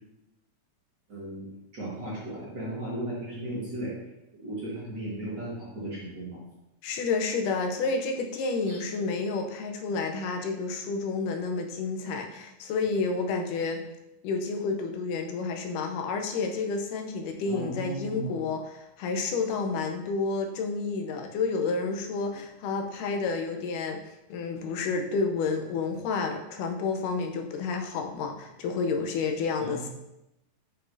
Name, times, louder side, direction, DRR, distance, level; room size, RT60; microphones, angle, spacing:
voice 1, 1.1-1.5 1.7-3.9 4.4-6.4 8.7-8.8 17.5-18.3 29.6-29.8, right 1 dB, 45° right, -7 dB, 1.8 m, -35 dB
voice 2, 6.8-13.8 14.2-29.9, left 4 dB, 90° left, 4 dB, 2.3 m, -30 dB
7.6 x 5.6 x 2.6 m, 0.90 s
omnidirectional pair, 3.6 m